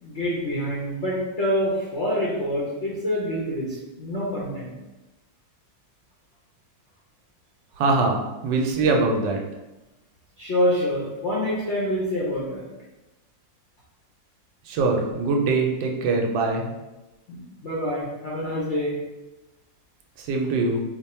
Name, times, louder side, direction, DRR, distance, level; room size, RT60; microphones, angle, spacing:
voice 1, 0.0-4.7 10.4-12.6 17.3-19.0, equal, 60° left, -7 dB, 0.7 m, -26 dB
voice 2, 7.8-9.4 14.7-16.7 20.2-20.8, right 3 dB, 80° right, 1 dB, 1.2 m, -23 dB
3.2 x 2.1 x 4.1 m, 1.0 s
omnidirectional pair, 2.0 m